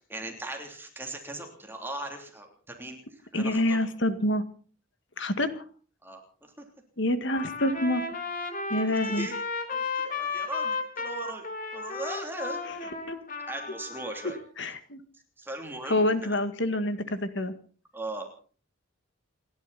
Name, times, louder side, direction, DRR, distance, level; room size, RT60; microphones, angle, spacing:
voice 1, 0.1-3.8 6.0-6.6 9.0-9.4 9.7-11.4 11.7-13.0 13.5-14.4 15.4-16.4 17.9-18.3, right 2 dB, 10° right, 3 dB, 3.1 m, -39 dB
voice 2, 3.3-4.4 5.2-5.6 7.0-8.0 8.7-9.3 13.1-13.2 14.2-15.0 15.8-17.5, left 1 dB, 60° left, 10 dB, 1.9 m, -27 dB
Trumpet, 7.3-14.4, left 4 dB, 40° left, 3.5 m, -34 dB
28.5 x 12.0 x 4.2 m, 0.41 s
head